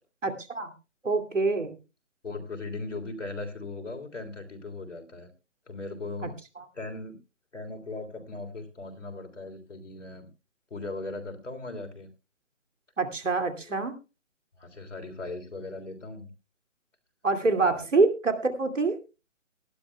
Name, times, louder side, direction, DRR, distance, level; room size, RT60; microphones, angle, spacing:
voice 1, 0.2-0.7 1.0-1.7 6.2-6.3 13.0-13.9 17.2-19.0, right 3 dB, 75° right, 8 dB, 2.7 m, -25 dB
voice 2, 2.2-5.3 5.7-6.4 6.7-7.2 7.5-10.3 10.7-12.1 13.7-13.8 14.6-16.3 17.6-17.9, left 3 dB, 70° left, 5 dB, 3.4 m, -38 dB
19.0 x 12.5 x 2.3 m, 0.30 s
figure-of-eight pair, 155°, 38 cm